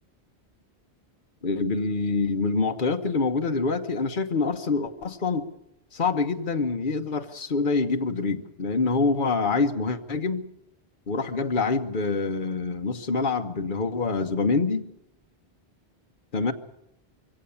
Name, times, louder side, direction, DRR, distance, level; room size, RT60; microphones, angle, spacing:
voice 1, 1.4-5.5 5.9-10.4 11.1-14.8 16.3-16.5, left 4 dB, 50° left, 6 dB, 1.3 m, -26 dB
23.5 x 17.0 x 7.1 m, 0.83 s
omnidirectional pair, 1.1 m